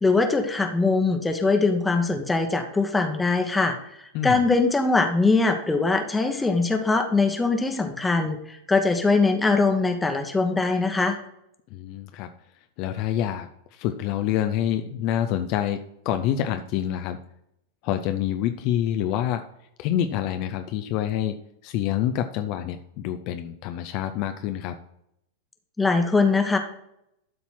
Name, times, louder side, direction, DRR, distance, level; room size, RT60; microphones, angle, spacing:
voice 1, 0.0-3.7 4.2-11.2 25.8-26.6, left 3 dB, 10° left, 4 dB, 1.1 m, -22 dB
voice 2, 11.7-12.3 12.8-17.2 17.8-19.4 19.8-21.4 21.6-24.7, left 11 dB, 45° left, 7 dB, 0.6 m, -27 dB
12.5 x 4.2 x 5.8 m, 0.76 s
figure-of-eight pair, 90°, 0 cm